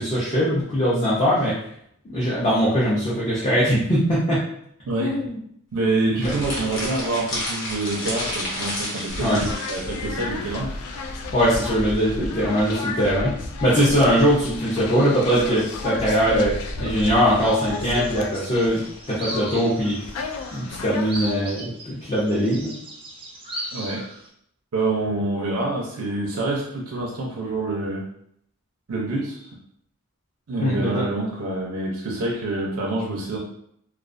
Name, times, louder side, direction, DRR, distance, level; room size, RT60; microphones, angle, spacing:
voice 1, 0.0-1.6 2.1-4.4 5.0-5.4 6.2-6.3 9.2-9.4 11.3-13.3 13.6-20.0 20.5-22.8 30.6-31.0, equal, 25° left, -8 dB, 0.5 m, -21 dB
voice 2, 4.8-5.2 5.7-10.8 23.7-24.1 24.7-28.1 28.9-29.5 30.5-33.4, right 2 dB, 85° right, -2 dB, 0.5 m, -26 dB
sound 1, 6.2-9.9, left 1 dB, 55° left, 0.9 m, -30 dB
sound 2, 9.1-21.3, left 3 dB, 80° left, 0.3 m, -33 dB
sound 3, 17.4-24.3, right 1 dB, 25° right, 0.4 m, -38 dB
2.3 x 2.3 x 2.4 m, 0.69 s
head